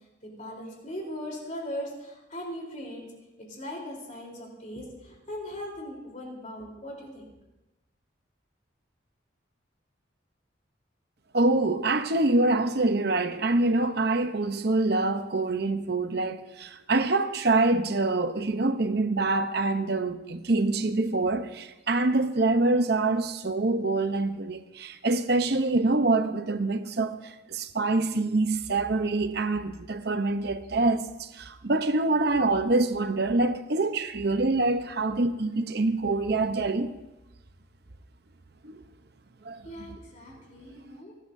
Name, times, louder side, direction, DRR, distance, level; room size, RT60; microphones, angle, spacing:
voice 1, 0.4-3.1 3.5-7.3 39.6-41.1, equal, 40° left, 3.7 m, -39 dB
voice 2, 11.3-36.9 38.6-38.8 39.4-39.9, right 2 dB, 55° right, 0.8 m, -25 dB
29.0 x 12.0 x 2.7 m
head